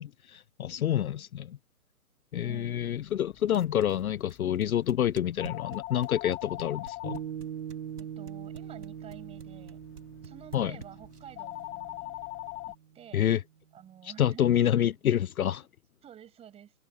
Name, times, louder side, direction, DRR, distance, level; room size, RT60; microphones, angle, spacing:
voice 1, 0.0-1.6 2.3-7.2 10.5-10.7 13.1-13.4 14.0-15.6, left 10 dB, 70° left, 0.6 m, -28 dB
sound 1, 2.4-12.7, left 20 dB, 20° left, 2.8 m, -44 dB
voice 2, 2.4-3.0 8.0-9.8 10.2-12.2 12.6-13.2 13.7-14.5 16.0-16.7, right 10 dB, 15° right, 5.9 m, -50 dB
sound 2, 3.5-11.4, right 5 dB, 85° right, 2.3 m, -47 dB
Piano, 7.0-13.7, right 9 dB, 50° right, 2.5 m, -43 dB
hypercardioid pair, 145°, 45 cm